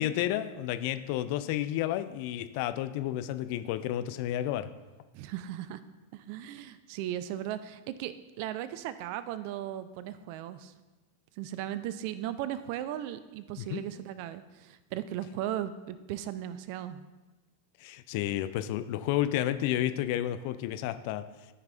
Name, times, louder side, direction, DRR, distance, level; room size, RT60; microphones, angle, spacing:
voice 1, 0.0-4.7 13.6-13.8 17.8-21.3, left 12 dB, 45° left, 11 dB, 0.4 m, -31 dB
voice 2, 5.1-5.8 6.1-10.7 11.4-17.0, right 12 dB, 45° right, 14 dB, 0.4 m, -37 dB
13.5 x 5.3 x 2.5 m, 1.2 s
figure-of-eight pair, 90°, 0 cm